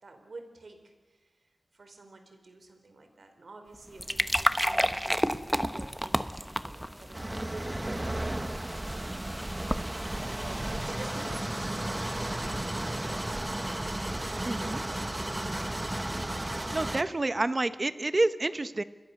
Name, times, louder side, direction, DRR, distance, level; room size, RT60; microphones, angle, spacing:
voice 1, 0.0-9.8 10.3-13.5 14.2-16.4, right 3 dB, 80° right, 6 dB, 4.5 m, -50 dB
sound 1, 3.7-11.3, equal, 5° right, 1.1 m, -32 dB
sound 2, 7.1-17.0, right 1 dB, 25° right, 1.5 m, -34 dB
voice 2, 14.4-14.8 16.7-18.8, right 2 dB, 45° right, 12 dB, 1.2 m, -28 dB
28.5 x 21.5 x 6.7 m, 1.3 s
wide cardioid pair, 65°, 0 cm